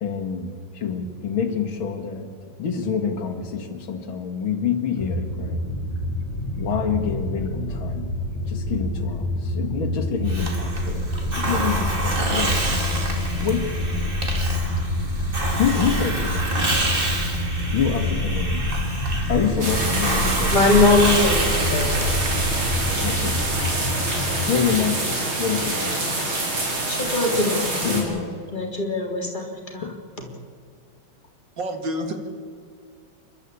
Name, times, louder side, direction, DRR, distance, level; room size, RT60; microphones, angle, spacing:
voice 1, 0.0-2.3 2.6-5.6 6.6-8.1 8.5-12.8 13.4-14.1 15.6-16.5 17.7-18.7 19.3-20.8 23.0-23.4 24.5-26.0 27.8-28.3 29.8-30.0, left 7 dB, 75° left, 5 dB, 2.6 m, -27 dB
sound 1, 5.0-24.5, left 1 dB, 55° left, 3.0 m, -28 dB
Hiss, 10.3-23.8, right 1 dB, 25° right, 2.7 m, -26 dB
sound 2, 19.6-28.0, right 2 dB, 80° right, 5.2 m, -26 dB
voice 2, 20.5-21.9 26.9-28.2 28.5-29.4 29.7-29.9, left 2 dB, 20° left, 1 dB, 3.6 m, -21 dB
voice 3, 31.6-32.1, equal, 60° right, 6 dB, 2.7 m, -28 dB
29.0 x 12.5 x 8.5 m, 2.2 s
omnidirectional pair, 2.3 m